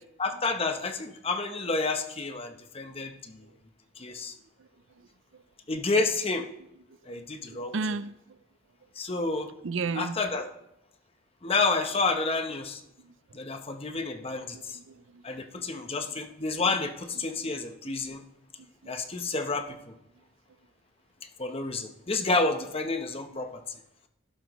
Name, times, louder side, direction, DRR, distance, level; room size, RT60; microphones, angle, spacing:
voice 1, 0.2-3.4 4.0-4.4 5.7-6.5 7.1-7.7 9.0-9.5 9.9-10.5 11.4-12.8 13.3-14.8 15.2-18.2 18.9-19.9 21.4-23.6, left 3 dB, 30° left, 0.9 m, -30 dB
voice 2, 7.5-8.1 9.6-10.2 13.0-13.1 14.3-15.2 15.6-15.9 17.4-17.6, right 4 dB, 70° right, 0.5 m, -34 dB
12.0 x 11.5 x 3.1 m
head